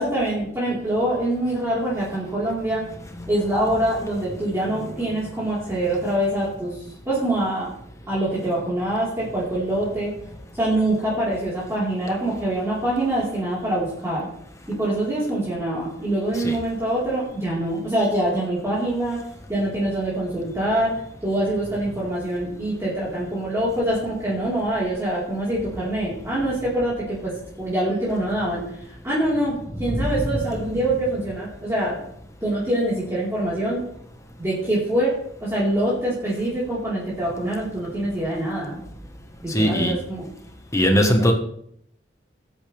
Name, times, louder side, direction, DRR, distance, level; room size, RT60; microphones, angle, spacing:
voice 1, 0.0-2.8 3.3-6.7 7.0-7.7 8.1-10.1 10.6-14.3 14.7-19.2 19.5-27.3 27.6-28.6 29.0-32.0 32.4-33.8 34.4-35.1 35.4-38.8 39.4-40.3, right 1 dB, 15° right, -9 dB, 4.3 m, -24 dB
voice 2, 29.9-30.2 39.5-39.9 40.7-41.3, equal, 15° left, 4 dB, 1.5 m, -19 dB
20.0 x 8.6 x 3.5 m, 0.70 s
head